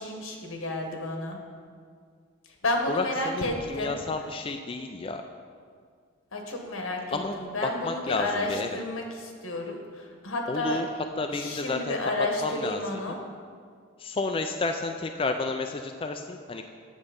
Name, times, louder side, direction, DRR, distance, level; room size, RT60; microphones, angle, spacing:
voice 1, 0.0-1.4 2.6-4.0 6.3-10.8 11.3-13.2, left 2 dB, 85° left, 2 dB, 1.5 m, -31 dB
voice 2, 2.9-5.2 7.1-7.4 7.6-8.8 10.5-10.9 11.2-12.0 12.4-13.0 14.0-16.7, left 3 dB, 25° left, 5 dB, 0.3 m, -31 dB
8.7 x 7.1 x 5.2 m, 2.1 s
head